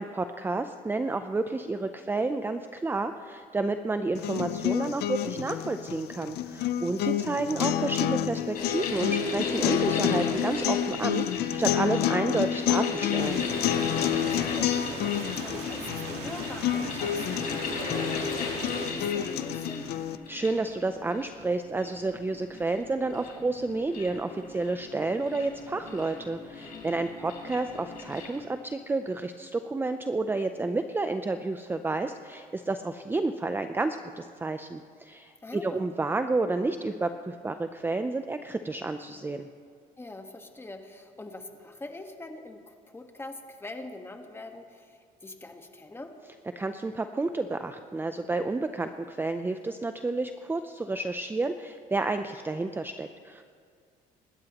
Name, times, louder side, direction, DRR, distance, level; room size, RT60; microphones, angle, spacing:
voice 1, 0.0-13.4 20.3-39.5 46.6-53.4, right 3 dB, 10° right, 8 dB, 0.5 m, -30 dB
sound 1, 4.1-20.2, left 11 dB, 75° left, 0.6 m, -29 dB
sound 2, 8.5-28.4, left 3 dB, 55° left, 4.0 m, -37 dB
sound 3, 13.2-18.9, right 5 dB, 85° right, 2.0 m, -40 dB
voice 2, 14.0-19.9 35.4-35.9 40.0-46.1, left 2 dB, 15° left, 5 dB, 1.4 m, -43 dB
26.0 x 13.0 x 3.0 m, 2.2 s
cardioid pair, 110°, 17 cm